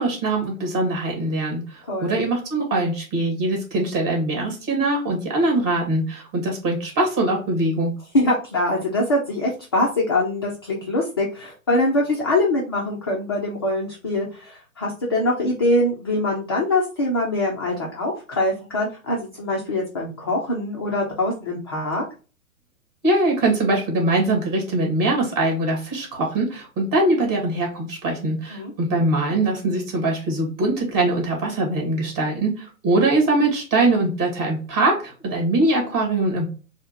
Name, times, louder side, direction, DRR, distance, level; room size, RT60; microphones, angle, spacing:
voice 1, 0.0-7.9 23.0-36.4, right 2 dB, 25° right, 1 dB, 2.0 m, -22 dB
voice 2, 1.9-2.2 8.1-22.0 28.5-28.7, left 1 dB, 20° left, -2 dB, 0.4 m, -23 dB
4.4 x 2.1 x 4.1 m, 0.35 s
figure-of-eight pair, 120°, 42 cm